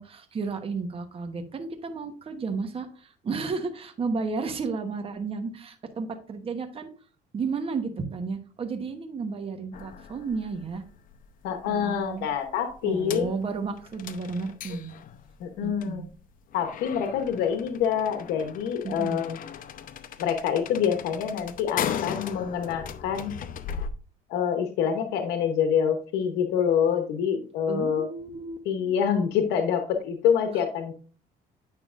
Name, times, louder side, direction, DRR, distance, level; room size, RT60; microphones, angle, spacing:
voice 1, 0.0-6.9 7.3-10.8 11.6-12.3 12.8-14.9 15.6-16.1 18.8-19.2 27.7-28.6, right 4 dB, 35° right, 6 dB, 1.1 m, -32 dB
sound 1, 9.7-23.9, left 8 dB, 55° left, 0.7 m, -38 dB
voice 2, 11.4-13.3 15.4-16.1 16.5-19.4 20.2-23.3 24.3-28.1 28.6-30.9, left 8 dB, 90° left, 6 dB, 0.9 m, -26 dB
9.2 x 5.8 x 2.5 m, 0.37 s
cardioid pair, 110°, 17 cm